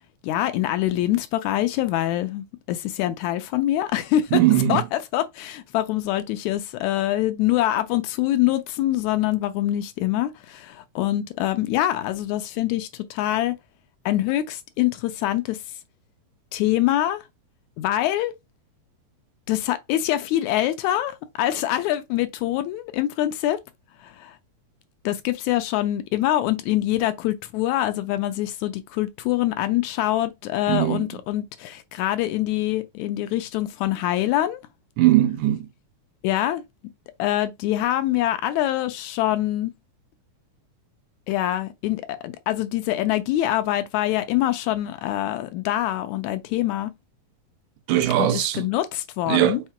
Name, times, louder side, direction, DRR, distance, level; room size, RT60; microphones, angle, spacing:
voice 1, 0.2-13.6 14.1-15.6 16.5-17.2 17.8-18.3 19.5-23.6 24.0-24.4 25.1-34.6 36.2-36.6 37.2-39.7 41.3-46.9 48.2-49.6, left 13 dB, 80° left, 1.8 m, -24 dB
voice 2, 4.3-4.8 30.7-31.0 35.0-35.7 47.9-48.7 49.3-49.6, right 13 dB, 80° right, 2.1 m, -19 dB
5.6 x 2.0 x 4.4 m
omnidirectional pair, 3.5 m